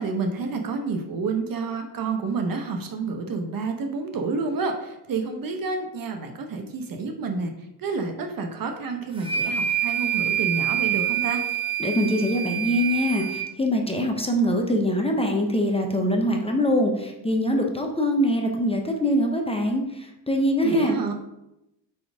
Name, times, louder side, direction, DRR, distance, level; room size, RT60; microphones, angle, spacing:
voice 1, 0.0-7.5 7.8-11.4 20.6-21.1, right 4 dB, 45° right, 5 dB, 1.0 m, -29 dB
sound 1, 9.2-13.5, right 10 dB, 10° right, 1.1 m, -26 dB
voice 2, 11.8-20.9, equal, 15° left, 2 dB, 0.8 m, -23 dB
4.5 x 4.4 x 4.9 m, 0.89 s
cardioid pair, 95°, 46 cm